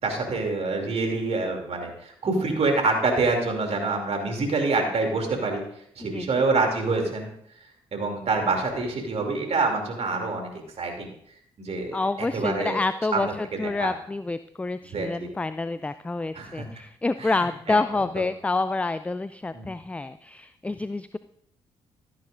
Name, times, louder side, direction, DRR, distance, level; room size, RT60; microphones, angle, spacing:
voice 1, 0.0-5.6 6.0-7.3 7.9-10.5 10.8-11.1 11.6-12.8 13.1-13.9 14.9-15.3 16.3-16.7 17.2-17.8 18.2-18.3 19.5-19.7, right 3 dB, 50° right, 2 dB, 2.8 m, -26 dB
voice 2, 6.0-6.5 11.9-21.2, left 3 dB, 10° left, 14 dB, 0.4 m, -28 dB
13.5 x 11.0 x 2.6 m, 0.68 s
hypercardioid pair, 45°, 13 cm